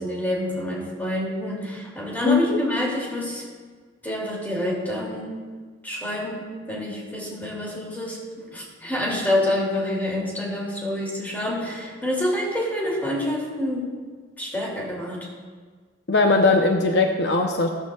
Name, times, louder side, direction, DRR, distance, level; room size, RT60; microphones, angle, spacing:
voice 1, 0.0-3.4 4.0-5.4 5.8-14.0 14.4-15.3, left 1 dB, 10° left, -4 dB, 2.7 m, -27 dB
voice 2, 2.2-2.6 16.1-17.7, left 3 dB, 60° left, 2 dB, 0.8 m, -19 dB
15.0 x 13.0 x 2.4 m, 1.5 s
head